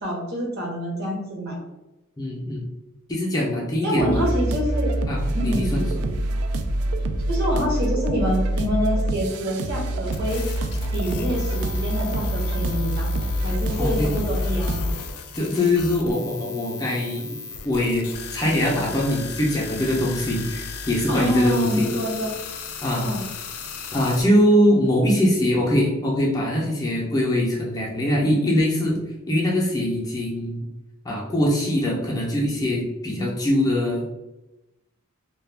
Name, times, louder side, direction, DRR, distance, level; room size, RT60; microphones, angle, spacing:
voice 1, 0.0-1.6 3.8-4.9 5.3-5.8 7.3-10.4 10.9-13.1 13.4-14.9 21.1-22.3 23.0-23.2, equal, 50° right, -2 dB, 0.8 m, -26 dB
voice 2, 2.2-2.7 3.1-4.2 5.1-6.0 13.8-14.1 15.3-17.3 17.6-18.0 18.3-21.9 22.8-23.1 23.9-30.7 31.0-34.1, left 1 dB, 15° left, -3 dB, 0.4 m, -22 dB
sound 1, 4.0-14.9, right 1 dB, 80° right, 0.3 m, -25 dB
sound 2, 10.1-24.2, left 5 dB, 85° left, 0.4 m, -36 dB
Clapping, 10.1-13.8 15.3-15.4, left 1 dB, 20° right, 0.6 m, -45 dB
2.2 x 2.1 x 3.2 m, 0.98 s
head